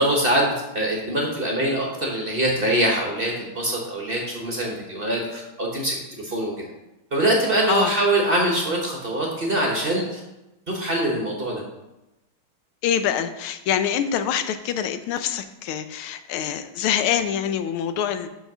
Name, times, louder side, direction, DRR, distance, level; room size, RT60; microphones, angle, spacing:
voice 1, 0.0-5.9 6.2-6.5 7.1-10.2 10.7-11.6, right 1 dB, 35° right, -1 dB, 1.1 m, -23 dB
voice 2, 12.8-18.3, left 9 dB, 85° left, 10 dB, 1.5 m, -25 dB
5.7 x 5.6 x 6.0 m, 0.96 s
omnidirectional pair, 2.3 m